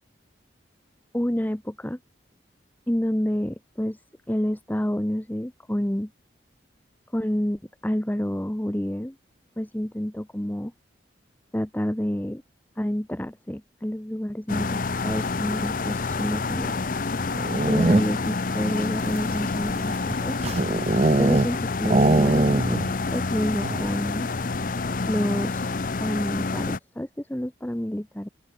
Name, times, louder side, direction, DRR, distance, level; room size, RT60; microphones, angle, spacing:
voice 1, 1.1-2.0 2.9-4.0 4.3-6.1 7.1-9.2 9.6-10.7 11.5-12.4 12.8-16.7 17.7-20.3 21.2-22.8 23.1-24.3 25.1-25.5 26.0-28.3, equal, 10° left, 0.8 m, -28 dB
sound 1, 14.5-26.8, left 3 dB, 45° left, 0.6 m, -28 dB
sound 2, 17.3-18.3 19.0-21.6 21.8-22.9 23.2-23.3 23.6-24.0, right 2 dB, 35° right, 0.6 m, -22 dB
open air
head